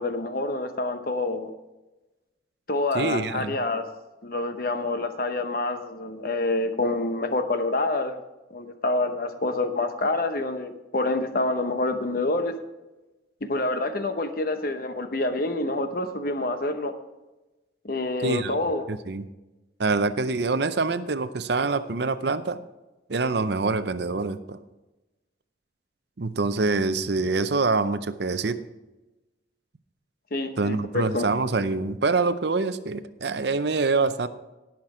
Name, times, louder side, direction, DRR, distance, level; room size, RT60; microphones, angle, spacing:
voice 1, 0.0-1.5 2.7-3.8 4.2-8.2 8.5-12.6 13.4-16.9 17.8-18.8 30.3-31.2, left 2 dB, 50° left, 8 dB, 0.9 m, -27 dB
voice 2, 2.9-3.6 18.2-18.6 18.9-19.3 19.8-22.6 23.1-24.6 26.2-28.6 30.6-34.3, right 3 dB, 60° right, 12 dB, 0.6 m, -25 dB
17.5 x 5.9 x 4.9 m, 1.1 s
head